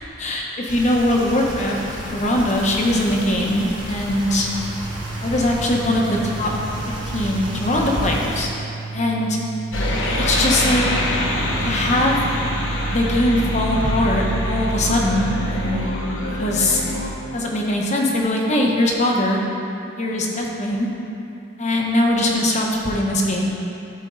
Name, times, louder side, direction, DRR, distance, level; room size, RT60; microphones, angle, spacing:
voice 1, 0.2-1.8 2.1-4.5 5.2-6.5 6.9-8.5 8.9-9.4 10.2-10.8 11.6-12.2 12.9-15.9 16.4-16.8 17.3-19.4 20.0-20.9 21.6-23.5, left 1 dB, 35° left, -1 dB, 0.9 m, -21 dB
sound 1, 0.7-8.4, equal, 20° right, 1.5 m, -33 dB
sound 2, 4.4-15.8, right 4 dB, 75° right, 0.6 m, -33 dB
sound 3, 9.7-17.1, left 1 dB, 75° left, 1.1 m, -24 dB
12.5 x 4.5 x 3.8 m, 2.8 s
head